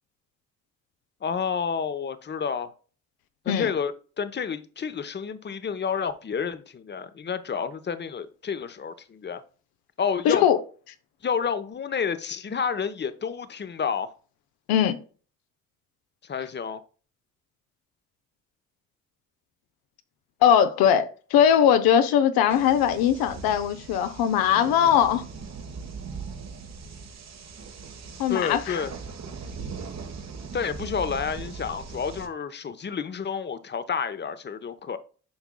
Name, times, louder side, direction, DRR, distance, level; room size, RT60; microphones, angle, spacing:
voice 1, 1.2-2.7 3.4-9.4 10.0-10.4 11.2-14.1 16.2-16.8 28.3-28.9 30.5-35.0, left 6 dB, 25° left, 0.9 m, -30 dB
voice 2, 10.2-10.6 14.7-15.0 20.4-25.2 28.2-28.8, left 9 dB, 65° left, 0.8 m, -20 dB
sound 1, 22.5-32.3, right 5 dB, 45° right, 1.3 m, -39 dB
9.5 x 5.7 x 2.2 m
figure-of-eight pair, 40°, 39 cm